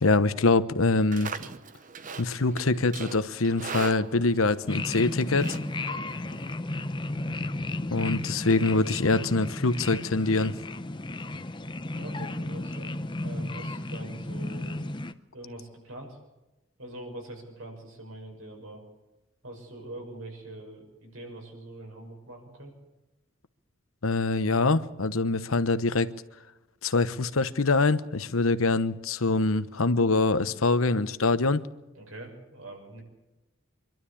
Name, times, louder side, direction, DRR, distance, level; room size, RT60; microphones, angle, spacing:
voice 1, 0.0-1.3 2.2-5.6 7.9-10.6 24.0-26.1 26.8-31.6, left 3 dB, 90° left, 1.1 m, -24 dB
Livestock farm animals working animals, 0.8-6.5, right 5 dB, 40° right, 0.9 m, -41 dB
sound 1, 4.7-15.1, left 2 dB, 20° left, 0.7 m, -34 dB
voice 2, 11.9-14.7 15.3-16.2 16.8-18.8 19.4-22.7 31.9-33.0, right 1 dB, 85° right, 6.4 m, -43 dB
25.5 x 12.0 x 8.6 m
head